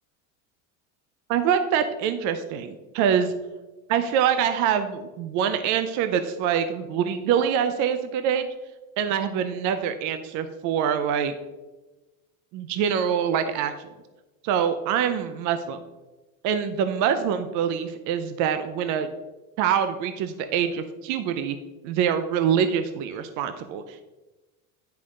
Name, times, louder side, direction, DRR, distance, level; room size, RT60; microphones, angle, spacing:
voice 1, 1.3-3.3 3.9-8.5 9.0-11.3 12.5-13.7 14.4-15.8 16.4-19.1 19.6-21.6 21.8-24.0, right 8 dB, 45° right, 9 dB, 0.5 m, -25 dB
10.0 x 5.7 x 3.7 m, 1.1 s
cardioid pair, 155°, 41 cm